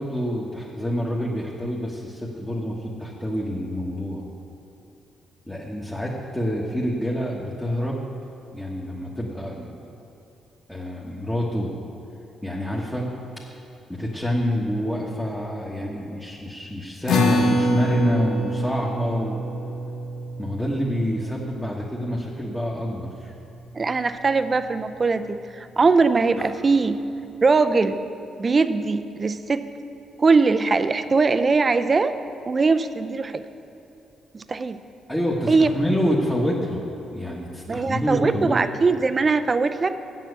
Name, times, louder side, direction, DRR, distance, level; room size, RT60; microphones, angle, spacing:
voice 1, 0.0-4.2 5.5-8.0 8.5-9.8 10.7-11.7 12.4-13.1 13.4-13.6 13.9-19.4 20.4-23.3 26.4-26.5 35.1-36.8 37.1-38.6, equal, 5° left, -5 dB, 1.3 m, -27 dB
sound 1, 17.1-23.7, left 1 dB, 75° left, 0.9 m, -27 dB
voice 2, 23.7-27.0 27.4-28.0 28.4-29.7 30.2-32.2 32.5-33.4 34.3-34.8 35.5-35.7 37.7-40.0, right 4 dB, 35° right, 11 dB, 0.5 m, -21 dB
7.5 x 6.9 x 8.2 m, 2.9 s
cardioid pair, 75°, 0 cm